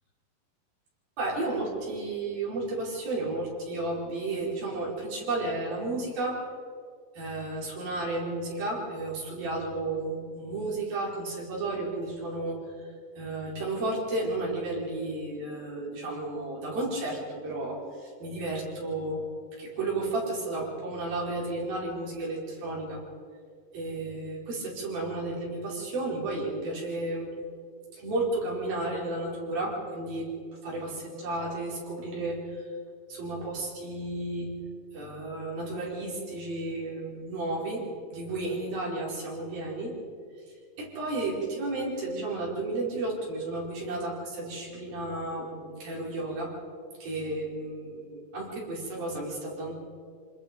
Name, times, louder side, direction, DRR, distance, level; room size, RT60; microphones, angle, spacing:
voice 1, 1.2-6.4 7.1-12.6 13.2-19.2 19.6-23.0 23.7-27.3 28.0-32.6 33.1-34.6 34.9-37.8 38.1-39.9 40.8-46.5 47.0-49.7, right 2 dB, 85° right, -4 dB, 6.5 m, -33 dB
26.5 x 20.5 x 5.3 m, 2.1 s
omnidirectional pair, 4.1 m